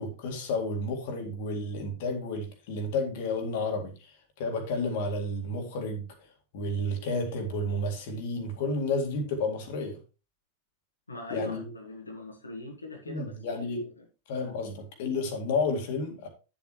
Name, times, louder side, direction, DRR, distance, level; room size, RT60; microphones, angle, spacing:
voice 1, 0.0-6.1 6.5-10.0 11.3-11.7 13.1-13.8 14.3-16.3, left 2 dB, 50° left, 2.0 m, -31 dB
voice 2, 11.1-14.0, left 2 dB, 80° left, 1.6 m, -42 dB
10.0 x 7.3 x 3.1 m
figure-of-eight pair, 90°, 0 cm